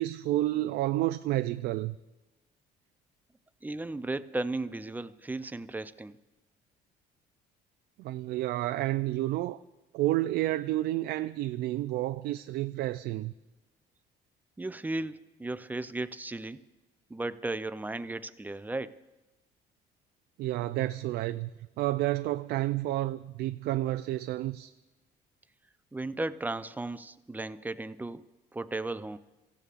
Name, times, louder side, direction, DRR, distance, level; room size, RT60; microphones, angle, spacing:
voice 1, 0.0-2.0 8.0-9.6 9.9-13.3 20.4-21.5 21.8-24.7, right 16 dB, 70° right, 0.4 m, -30 dB
voice 2, 3.6-6.2 14.6-16.6 17.1-19.0 25.9-28.2 28.5-29.2, right 2 dB, 10° right, 0.4 m, -35 dB
29.0 x 15.5 x 2.5 m
cardioid pair, 110°, 17 cm